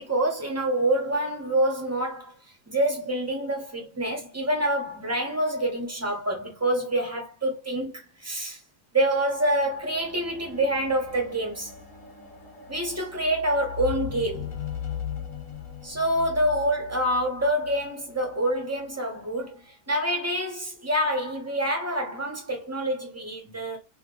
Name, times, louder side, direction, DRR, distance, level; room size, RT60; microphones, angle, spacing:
voice 1, 0.0-2.4 2.7-8.6 8.9-11.7 12.7-14.5 15.8-19.6 19.9-23.8, right 1 dB, 20° right, 0.4 m, -26 dB
sound 1, 9.1-18.6 19.4-19.5, left 8 dB, 45° left, 0.8 m, -39 dB
2.9 x 2.1 x 3.7 m
omnidirectional pair, 1.7 m